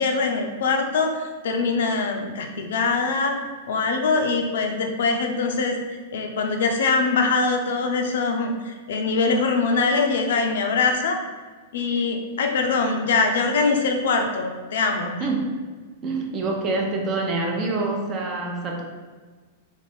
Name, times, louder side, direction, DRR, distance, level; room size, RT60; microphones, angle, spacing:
voice 1, 0.0-3.4 3.7-5.8 6.1-11.2 11.7-15.3, left 4 dB, 80° left, 4 dB, 0.5 m, -23 dB
voice 2, 16.0-18.8, right 3 dB, 30° right, 1 dB, 0.6 m, -26 dB
3.2 x 2.5 x 3.3 m, 1.4 s
supercardioid pair, 140°, 0 cm